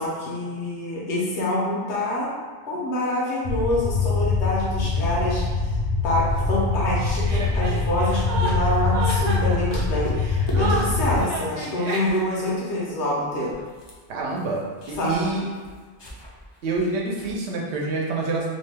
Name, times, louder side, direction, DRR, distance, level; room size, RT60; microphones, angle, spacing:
voice 1, 0.0-2.3 2.7-13.5 14.9-15.2, left 1 dB, 90° left, -5 dB, 1.0 m, -26 dB
sound 1, 3.4-11.2, left 4 dB, 65° left, 0.7 m, -24 dB
sound 2, 6.2-8.9 9.2-9.4 9.7-10.6 10.8-11.3 11.6-11.7 12.0-12.6 12.9-13.0 13.3-17.3, left 1 dB, 45° left, 0.3 m, -38 dB
Chuckle chortle, 7.2-12.5, right 2 dB, 55° right, 0.5 m, -30 dB
voice 2, 14.1-14.6 14.9-15.4 16.6-18.5, right 3 dB, 85° right, -2 dB, 0.9 m, -27 dB
2.7 x 2.1 x 3.2 m, 1.5 s
omnidirectional pair, 1.1 m